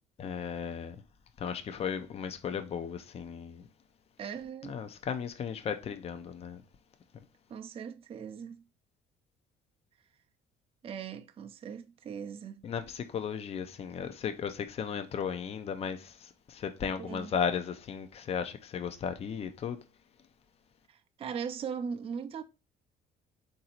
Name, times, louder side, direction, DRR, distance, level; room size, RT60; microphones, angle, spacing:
voice 1, 0.2-1.0 1.4-3.7 4.6-6.6 7.1-7.2 12.6-19.8, left 7 dB, 35° left, 0.5 m, -35 dB
voice 2, 4.2-4.8 7.5-8.7 10.8-12.7 17.0-17.4 20.9-22.4, right 7 dB, 35° right, 0.4 m, -39 dB
3.9 x 2.7 x 4.2 m
cardioid pair, 110°, 17 cm